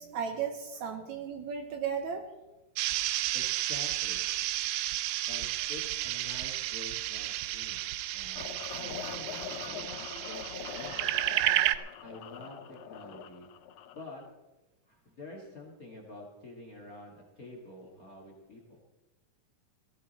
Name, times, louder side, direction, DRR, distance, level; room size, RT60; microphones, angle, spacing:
voice 1, 0.0-2.3 10.1-10.2, right 7 dB, 70° right, 6 dB, 2.1 m, -35 dB
sound 1, 2.8-11.8, right 15 dB, 90° right, 1.6 m, -32 dB
voice 2, 3.3-4.2 5.3-7.8 8.1-9.9 10.2-11.1 12.0-13.5 13.9-14.2 14.9-18.8, left 2 dB, 35° left, 1 dB, 1.5 m, -48 dB
sound 2, 8.4-14.3, left 7 dB, 90° left, 1.3 m, -43 dB
16.5 x 14.5 x 4.2 m, 1.1 s
omnidirectional pair, 3.9 m